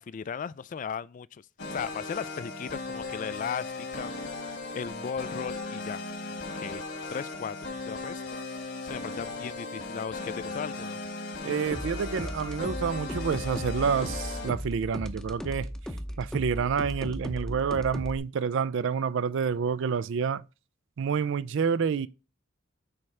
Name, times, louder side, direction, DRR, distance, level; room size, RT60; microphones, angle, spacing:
voice 1, 0.0-4.1 4.7-6.0 6.3-6.8 7.1-7.6 7.9-8.4 8.8-11.0, left 7 dB, 40° left, 0.3 m, -36 dB
sound 1, 1.6-14.5, left 3 dB, 60° left, 1.9 m, -37 dB
voice 2, 11.4-15.7 16.2-20.4 21.0-22.1, right 6 dB, 65° right, 0.4 m, -28 dB
sound 2, 11.7-18.2, equal, 5° left, 0.7 m, -36 dB
8.5 x 3.3 x 4.8 m
head